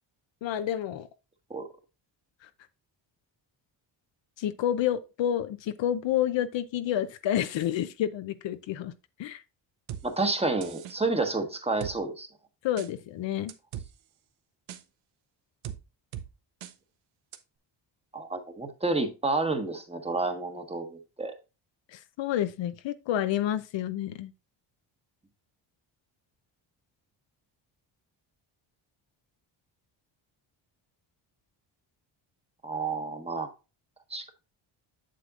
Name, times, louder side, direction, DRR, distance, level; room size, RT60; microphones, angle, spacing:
voice 1, 0.4-1.1 2.4-2.5 4.4-8.9 9.2-9.4 12.6-13.5 21.9-24.3, left 11 dB, 65° left, 0.7 m, -29 dB
sound 1, 9.9-10.0 10.6-11.0 11.8-11.9 12.8-12.9 13.5-13.9 14.7-14.8 15.6-15.8 16.1-16.3 16.6-16.7 17.3-17.4, right 10 dB, 80° right, 0.9 m, -38 dB
voice 2, 10.0-12.3 18.1-21.3 32.6-33.5 34.1-34.2, right 3 dB, 10° right, 1.3 m, -30 dB
7.7 x 6.8 x 2.4 m
cardioid pair, 85°, 48 cm